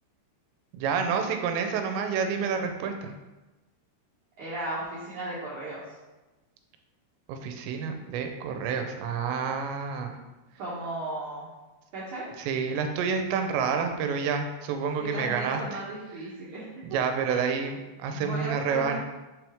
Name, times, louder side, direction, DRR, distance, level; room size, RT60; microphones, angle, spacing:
voice 1, 0.7-3.1 7.3-10.1 12.4-15.8 16.8-19.0, right 6 dB, 85° right, 5 dB, 2.9 m, -29 dB
voice 2, 4.4-5.8 10.6-11.5 11.9-12.3 15.0-17.0 17.3-17.4 18.1-19.0, right 2 dB, 65° right, -8 dB, 1.9 m, -35 dB
6.7 x 6.0 x 3.5 m, 1.1 s
omnidirectional pair, 5.2 m